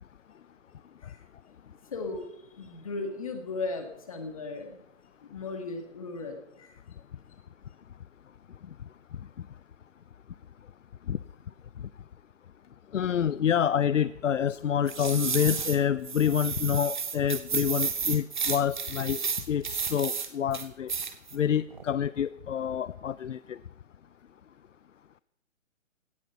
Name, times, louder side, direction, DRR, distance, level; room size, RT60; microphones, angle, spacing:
voice 1, 1.0-1.3 1.7-4.8 5.2-6.8, left 3 dB, 25° left, 5 dB, 1.9 m, -37 dB
voice 2, 12.9-20.9 21.3-23.6, left 9 dB, 70° left, 17 dB, 0.6 m, -27 dB
sound 1, 14.9-15.8 16.0-20.3 20.5-21.4 21.7-21.8, right 6 dB, 35° right, 1.5 m, -32 dB
17.5 x 12.0 x 5.7 m, 0.83 s
hypercardioid pair, 180°, 39 cm